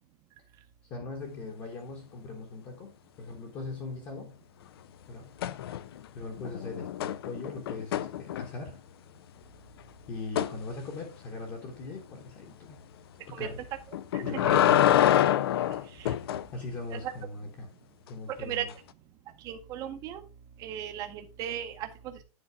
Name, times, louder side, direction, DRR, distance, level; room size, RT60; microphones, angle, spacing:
voice 1, 0.8-4.3 5.1-5.8 6.1-8.8 10.1-12.8 13.3-13.7 14.1-15.2 15.6-17.7 18.1-18.7, left 3 dB, 20° left, 1.1 m, -40 dB
sound 1, 5.4-6.1 6.4-8.8 10.4-10.6 13.9-16.5 18.7-18.8, left 11 dB, 40° left, 0.4 m, -26 dB
voice 2, 14.1-14.6 16.0-16.1 16.9-17.0 18.4-18.7 19.4-20.2 20.6-22.2, right 10 dB, 20° right, 0.8 m, -36 dB
9.6 x 3.9 x 4.7 m
hypercardioid pair, 170°, 20 cm